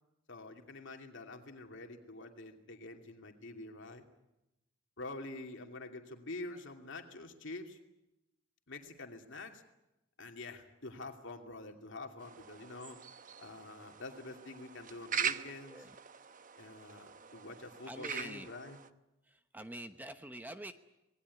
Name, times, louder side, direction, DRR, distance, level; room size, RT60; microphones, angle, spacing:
voice 1, 0.3-4.0 5.0-7.8 8.7-9.6 10.2-13.0 13.4-15.9 16.6-18.8, left 2 dB, 65° left, 3 dB, 2.7 m, -47 dB
sound 1, 12.2-18.9, right 7 dB, 45° right, 0.9 m, -42 dB
voice 2, 17.9-18.5 19.3-20.7, right 1 dB, 10° right, 8 dB, 0.9 m, -46 dB
26.5 x 19.5 x 9.8 m, 0.94 s
head